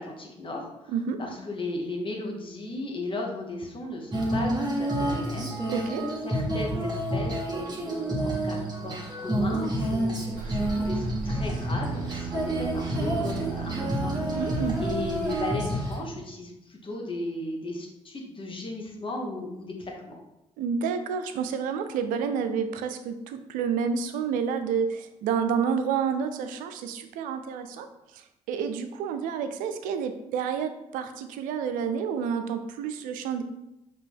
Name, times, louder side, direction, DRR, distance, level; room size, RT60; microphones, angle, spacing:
voice 1, 0.0-5.5 6.2-14.4 14.8-20.2, left 2 dB, 40° left, 0 dB, 1.3 m, -36 dB
voice 2, 0.9-1.2 5.7-6.1 14.4-14.8 20.6-27.9 28.1-28.2 28.5-33.4, right 6 dB, 80° right, 9 dB, 0.4 m, -29 dB
Female singing, 4.1-16.0, right 1 dB, 30° right, 1.3 m, -29 dB
sound 1, 10.3-15.5, right 2 dB, 65° right, 1.0 m, -39 dB
sound 2, 11.3-15.7, right 7 dB, 15° right, 0.9 m, -37 dB
5.0 x 2.9 x 3.6 m, 0.90 s
supercardioid pair, 55°, 14 cm